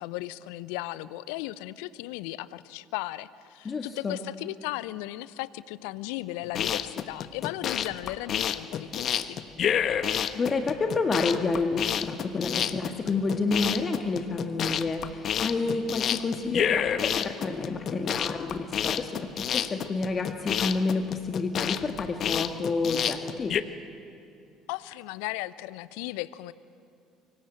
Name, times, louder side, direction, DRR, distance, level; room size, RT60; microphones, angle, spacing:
voice 1, 0.0-9.4 24.7-26.5, left 17 dB, 70° left, 18 dB, 0.7 m, -36 dB
voice 2, 3.7-4.2 10.3-17.1 17.4-23.5, left 3 dB, 35° left, 4 dB, 1.7 m, -29 dB
sound 1, 6.4-23.6, left 9 dB, 50° left, 1.1 m, -29 dB
25.0 x 23.5 x 8.3 m, 2.6 s
figure-of-eight pair, 60°, 0 cm